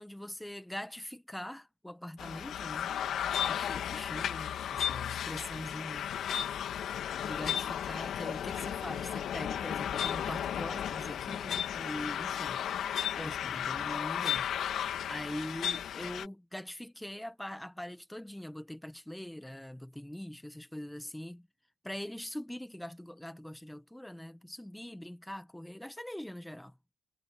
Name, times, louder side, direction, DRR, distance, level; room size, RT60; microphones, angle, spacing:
voice 1, 0.0-3.0 3.4-6.1 7.2-12.6 13.1-21.5 21.8-26.8, left 1 dB, 5° left, 1.5 m, -43 dB
sound 1, 2.2-16.3, left 9 dB, 70° left, 1.8 m, -34 dB
cardioid pair, 90°, 0 cm